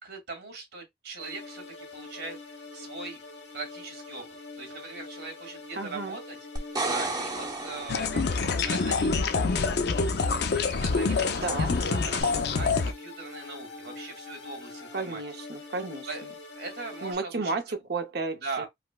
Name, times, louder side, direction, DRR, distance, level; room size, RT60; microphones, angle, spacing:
voice 1, 0.0-2.4 2.7-3.2 3.5-4.3 4.6-6.4 6.9-8.3 8.7-9.7 10.2-15.2 16.1-16.3 16.6-17.8 18.4-18.7, right 3 dB, 85° right, 2.4 m, -40 dB
sound 1, 1.2-17.1, left 3 dB, 85° left, 1.0 m, -44 dB
voice 2, 5.7-6.2 11.4-11.7 14.9-16.1 17.0-18.7, right 3 dB, 65° right, 0.7 m, -32 dB
sound 2, 6.6-8.5 12.2-12.3, right 2 dB, 25° right, 0.8 m, -32 dB
sound 3, 7.9-12.9, left 4 dB, 65° left, 0.5 m, -26 dB
4.9 x 2.1 x 2.3 m
head